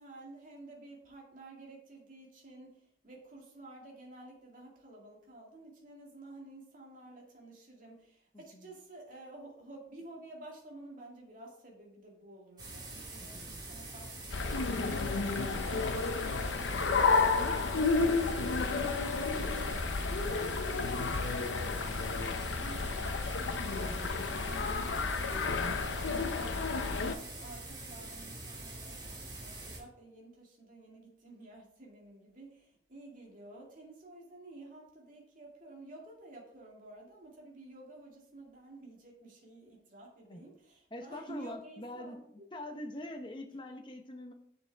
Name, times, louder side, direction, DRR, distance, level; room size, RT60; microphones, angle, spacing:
voice 1, 0.0-16.3 16.5-19.0 19.4-25.5 25.9-26.7 27.2-42.2, right 2 dB, 45° right, -2 dB, 2.2 m, -52 dB
voice 2, 8.3-8.7 13.2-13.6 20.0-20.5 25.1-25.9 40.2-40.4 40.9-42.2 42.5-44.3, left 1 dB, 25° left, 4 dB, 0.8 m, -45 dB
sound 1, 12.6-29.8, right 2 dB, 25° right, 1.7 m, -45 dB
sound 2, 14.3-27.2, left 4 dB, 85° left, 0.7 m, -31 dB
6.6 x 6.6 x 3.4 m, 0.68 s
head